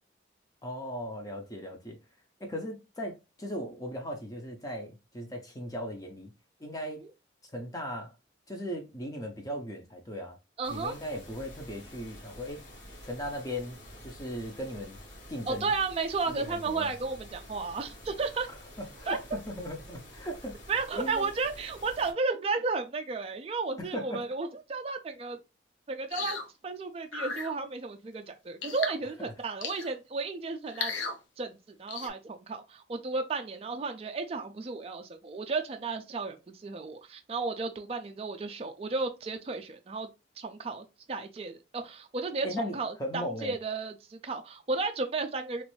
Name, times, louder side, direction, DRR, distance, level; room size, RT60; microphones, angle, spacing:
voice 1, 0.6-2.0 2.4-6.3 6.6-7.0 7.5-8.1 8.5-10.4 10.7-12.6 13.0-15.0 15.3-15.7 16.3-16.9 18.5-20.5 20.9-21.3 23.8-24.2 42.4-43.6, equal, 20° left, 0.5 m, -38 dB
sound 1, 10.6-22.1, equal, 70° left, 1.7 m, -49 dB
voice 2, 10.6-10.9 15.5-18.5 19.1-19.2 20.7-25.4 25.9-26.4 26.6-30.9 31.4-40.1 40.4-45.6, right 4 dB, 30° right, 0.3 m, -33 dB
sound 2, 26.1-26.5 27.1-27.5 28.6-29.0 29.6-29.9 30.7-31.2 31.9-32.1, left 5 dB, 85° left, 0.6 m, -35 dB
3.0 x 2.5 x 3.1 m
head